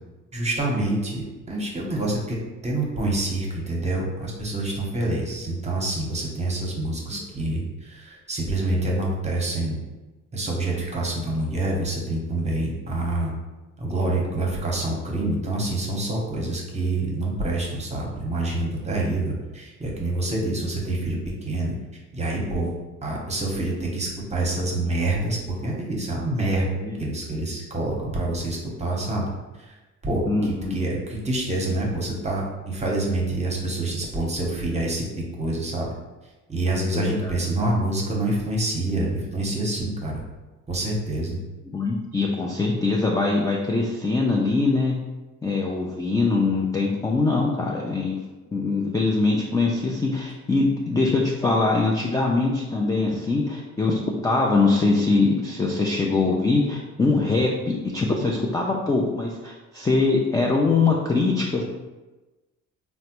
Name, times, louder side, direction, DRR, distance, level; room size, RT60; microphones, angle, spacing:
voice 1, 0.3-2.4 2.6-9.8 10.3-13.3 13.8-21.2 21.4-21.7 22.1-22.7 23.0-26.6 27.0-29.3 29.7-29.8 30.0-35.0 35.4-35.9 36.5-40.2 40.7-41.4, right 2 dB, 20° right, -2 dB, 0.8 m, -26 dB
voice 2, 30.3-30.8 36.9-37.3 41.7-45.0 45.4-48.2 48.5-61.6, left 3 dB, 10° left, -2 dB, 0.3 m, -23 dB
3.2 x 2.1 x 2.9 m, 1.1 s
supercardioid pair, 75°, 33 cm